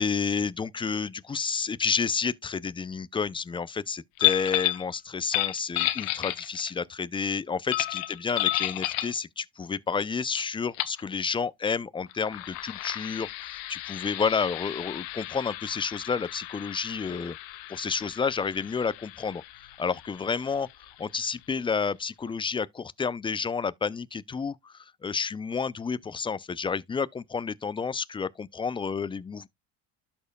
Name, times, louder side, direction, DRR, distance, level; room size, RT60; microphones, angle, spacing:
voice 1, 0.0-19.4 19.8-20.7 21.0-29.5, left 5 dB, 15° left, 0.4 m, -30 dB
sound 1, 4.2-4.8 5.2-6.8 7.7-9.2 10.3-10.4 10.7-11.0 12.1-21.3, left 17 dB, 75° left, 1.0 m, -32 dB
12.5 x 4.4 x 2.2 m
supercardioid pair, 100°, 37 cm